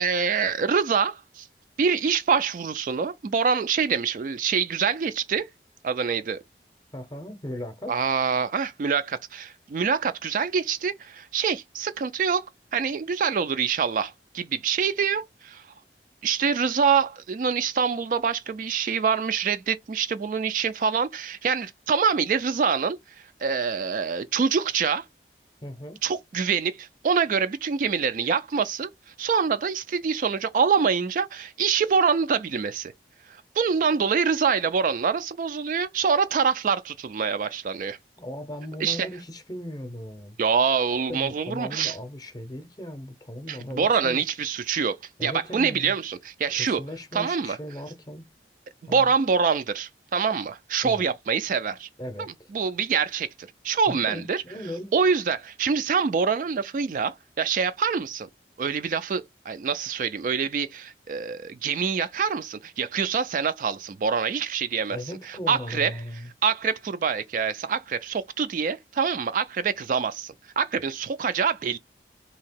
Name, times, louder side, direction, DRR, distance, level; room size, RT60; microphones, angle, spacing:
voice 1, 0.0-1.5 1.8-5.5 5.8-6.4 7.9-12.5 12.7-15.6 16.2-25.1 26.0-28.9 29.2-32.9 33.3-38.0 38.8-39.1 40.4-42.0 43.5-46.8 47.1-47.6 48.8-51.9 52.5-53.3 53.6-54.4 54.9-58.3 58.6-65.0 65.3-65.9 66.4-71.8, right 6 dB, 50° right, 0.3 m, -25 dB
voice 2, 6.9-7.9 25.6-26.0 38.2-40.4 41.1-44.2 45.2-46.0 46.5-48.3 48.9-49.1 50.8-51.1 52.0-52.5 53.9-54.9 64.9-66.3, left 1 dB, 20° left, 0.7 m, -37 dB
2.9 x 2.8 x 4.4 m
head